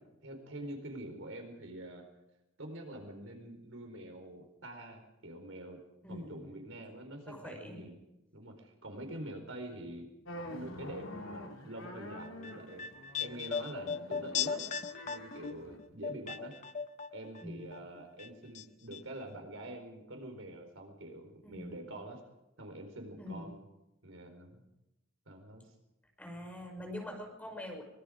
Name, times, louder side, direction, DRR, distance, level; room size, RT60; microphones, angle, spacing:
voice 1, 0.2-2.0 2.6-5.8 6.1-8.0 8.3-10.1 10.5-12.9 13.2-14.6 15.0-16.5 17.1-22.2 22.6-23.6 24.0-24.6 25.3-25.6, right 1 dB, 80° right, 4 dB, 4.4 m, -46 dB
voice 2, 6.0-6.6 7.2-7.9 17.4-17.8 21.4-21.8 23.2-23.5 26.2-27.8, left 1 dB, 5° left, 2 dB, 5.0 m, -44 dB
sound 1, 10.3-15.8, left 1 dB, 80° left, 2.9 m, -47 dB
sound 2, 12.2-17.4 17.7-18.6 18.9-19.0, left 7 dB, 35° left, 0.9 m, -38 dB
24.5 x 22.0 x 5.1 m, 0.94 s
head